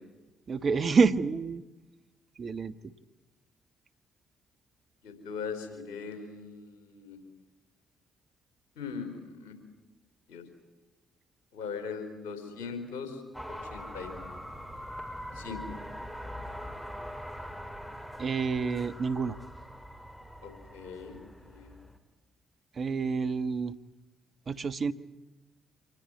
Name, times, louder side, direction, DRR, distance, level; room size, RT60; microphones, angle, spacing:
voice 1, 0.5-1.6 2.4-2.9 18.2-19.4 22.8-23.7 24.5-24.9, right 5 dB, 45° right, 12 dB, 1.3 m, -28 dB
voice 2, 5.0-7.2 8.8-9.5 10.3-10.4 11.5-13.2 13.7-14.1 15.3-15.8 20.4-21.7, left 5 dB, 80° left, 9 dB, 4.5 m, -40 dB
sound 1, 13.3-22.0, equal, 5° left, 4.3 m, -43 dB
26.0 x 19.0 x 9.7 m, 1.1 s
hypercardioid pair, 45°, 0 cm